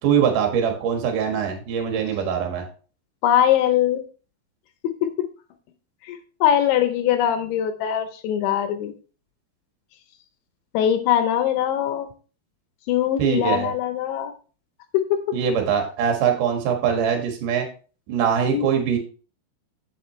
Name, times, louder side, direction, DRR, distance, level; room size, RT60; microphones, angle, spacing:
voice 1, 0.0-2.6 13.2-13.7 15.3-17.7 18.1-19.0, right 7 dB, 60° right, 2 dB, 2.4 m, -22 dB
voice 2, 3.2-4.0 4.8-5.1 6.0-8.9 10.7-12.1 12.9-14.3 14.9-15.4 18.5-18.7, left 10 dB, 80° left, 9 dB, 2.8 m, -22 dB
8.3 x 7.9 x 3.2 m, 0.37 s
omnidirectional pair, 5.9 m